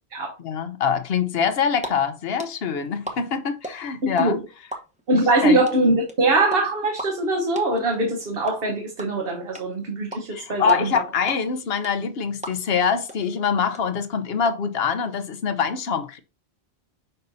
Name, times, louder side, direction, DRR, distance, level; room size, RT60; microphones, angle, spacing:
voice 1, 0.4-4.4 5.1-5.6 10.3-16.2, left 6 dB, 65° left, 1.0 m, -24 dB
sound 1, 1.5-1.9 2.1-4.2 4.5-12.8 13.1-13.2 13.4-14.5, right 1 dB, 5° right, 0.9 m, -36 dB
voice 2, 4.0-4.4 5.1-10.8, right 2 dB, 60° right, 1.2 m, -22 dB
6.8 x 5.4 x 2.7 m
omnidirectional pair, 1.1 m